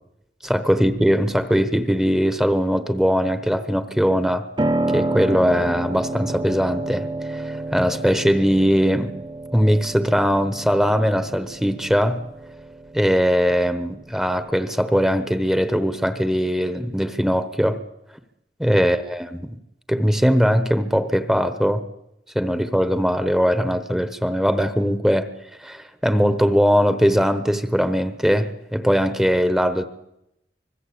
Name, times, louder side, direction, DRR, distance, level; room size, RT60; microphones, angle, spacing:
voice 1, 0.4-4.4 4.9-9.1 9.5-12.2 12.9-17.8 18.6-19.5 19.9-21.8 22.3-25.3 25.6-29.8, equal, 5° right, 11 dB, 1.1 m, -20 dB
Piano, 4.6-14.5, right 2 dB, 25° right, 0.9 m, -29 dB
24.5 x 20.5 x 8.6 m, 0.86 s
head